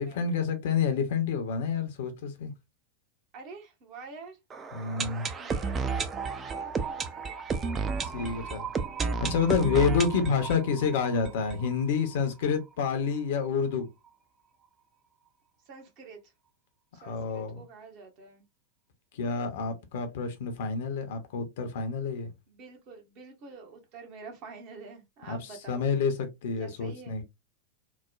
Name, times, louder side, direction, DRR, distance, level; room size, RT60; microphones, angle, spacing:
voice 1, 0.0-2.5 4.7-5.3 8.1-8.7 9.2-13.9 17.0-17.6 19.1-22.3 25.3-25.4 25.7-27.2, left 6 dB, 55° left, 0.6 m, -28 dB
voice 2, 3.3-4.4 5.2-5.8 6.2-7.4 15.7-16.3 16.9-18.4 22.5-25.9 26.6-27.2, right 4 dB, 40° right, 0.9 m, -47 dB
sound 1, 4.5-12.3 12.5-12.6 12.8-12.9 13.5-13.6, right 5 dB, 20° right, 0.4 m, -33 dB
3.0 x 2.1 x 2.3 m
figure-of-eight pair, 90°, 0 cm